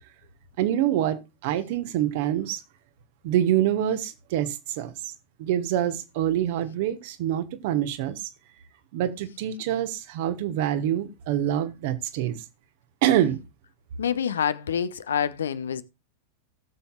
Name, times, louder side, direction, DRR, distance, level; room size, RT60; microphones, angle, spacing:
voice 1, 0.6-2.6 3.2-5.1 5.4-8.3 8.9-12.4 13.0-13.4, right 11 dB, 50° right, 1.2 m, -26 dB
voice 2, 14.0-15.8, left 8 dB, 65° left, 0.7 m, -27 dB
18.0 x 7.1 x 2.3 m
figure-of-eight pair, 90°, 0 cm